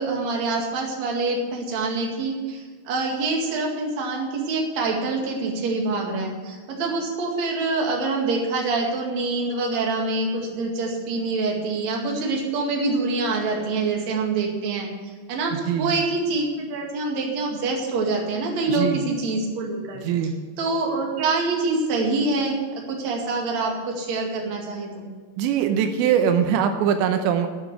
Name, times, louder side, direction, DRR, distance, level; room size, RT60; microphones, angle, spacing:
voice 1, 0.0-14.9 15.3-20.0 20.6-22.5 22.9-25.1, right 3 dB, 45° right, -1 dB, 2.9 m, -25 dB
voice 2, 15.5-15.9 18.7-19.0 20.0-20.4 25.4-27.5, right 8 dB, 85° right, 6 dB, 3.1 m, -22 dB
9.8 x 9.1 x 8.1 m, 1.5 s
omnidirectional pair, 5.1 m